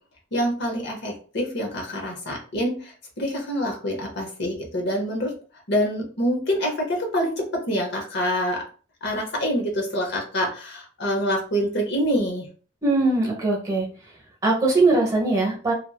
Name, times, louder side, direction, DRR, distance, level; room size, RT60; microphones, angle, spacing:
voice 1, 0.3-5.3 5.7-8.6 9.0-12.5, equal, 55° left, 1 dB, 0.8 m, -26 dB
voice 2, 12.8-13.9 14.4-15.7, right 2 dB, 15° right, -2 dB, 0.9 m, -21 dB
2.9 x 2.5 x 2.3 m, 0.39 s
head